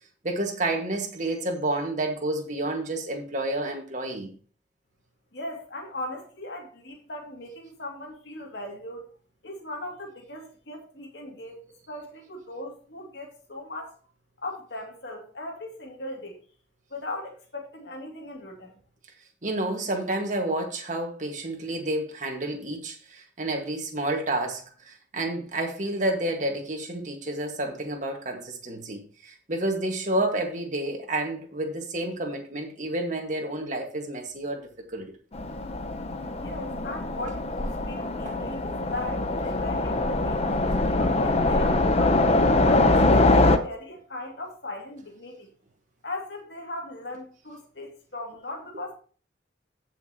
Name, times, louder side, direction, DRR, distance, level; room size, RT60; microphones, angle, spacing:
voice 1, 0.2-4.3 19.4-35.1 38.2-38.5, right 1 dB, 40° right, 1.7 m, -30 dB
voice 2, 5.3-9.1 9.4-13.9 14.4-16.4 16.9-18.7 36.4-40.4 40.9-45.5 46.0-48.9, left 1 dB, 60° left, 2.5 m, -38 dB
Train, 35.3-43.6, left 2 dB, 35° left, 0.8 m, -23 dB
15.0 x 5.9 x 2.9 m
head